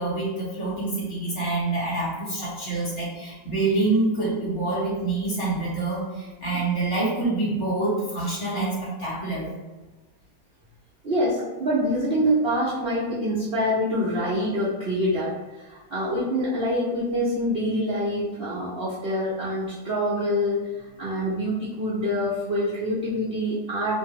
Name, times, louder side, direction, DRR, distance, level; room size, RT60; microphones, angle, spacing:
voice 1, 0.0-9.5, right 2 dB, 45° left, -7 dB, 1.2 m, -26 dB
voice 2, 11.0-24.0, equal, 70° right, -7 dB, 0.5 m, -26 dB
2.9 x 2.6 x 2.9 m, 1.2 s
omnidirectional pair, 2.0 m